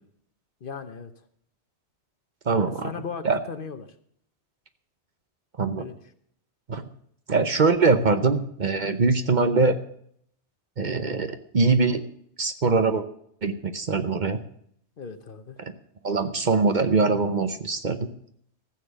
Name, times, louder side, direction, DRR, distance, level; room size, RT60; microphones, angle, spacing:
voice 1, 0.6-1.1 2.6-3.9 5.8-6.0 15.0-15.6, left 5 dB, 55° left, 10 dB, 1.0 m, -37 dB
voice 2, 2.5-2.9 3.2-3.4 5.6-5.9 6.7-6.8 7.3-9.8 10.8-12.0 12.4-13.0 13.4-14.4 15.6-15.7 16.0-18.0, right 4 dB, 45° right, 9 dB, 0.9 m, -22 dB
15.0 x 7.3 x 6.9 m, 0.67 s
omnidirectional pair, 1.2 m